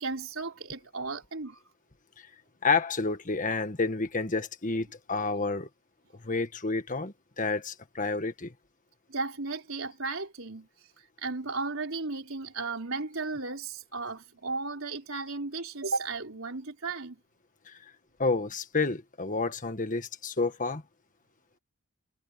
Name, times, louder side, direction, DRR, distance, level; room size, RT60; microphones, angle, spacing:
voice 1, 0.0-1.6 9.1-10.7 11.2-17.2, right 3 dB, 65° right, 4.4 m, -35 dB
voice 2, 2.6-5.7 6.2-8.5 17.7-17.8 18.2-20.8, left 4 dB, 35° left, 1.6 m, -29 dB
head